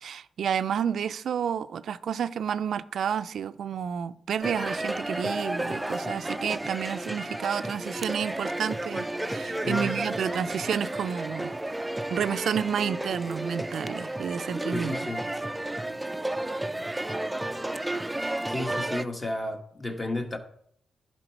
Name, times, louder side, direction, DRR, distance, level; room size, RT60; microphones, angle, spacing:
voice 1, 0.0-11.6 12.1-14.9, right 8 dB, 70° right, 0.4 m, -30 dB
sound 1, 4.4-19.0, right 1 dB, 10° right, 0.4 m, -32 dB
voice 2, 9.6-9.9 14.7-15.3 18.5-20.4, left 2 dB, 25° left, 1.3 m, -32 dB
11.0 x 4.5 x 4.5 m
cardioid pair, 65°, 0 cm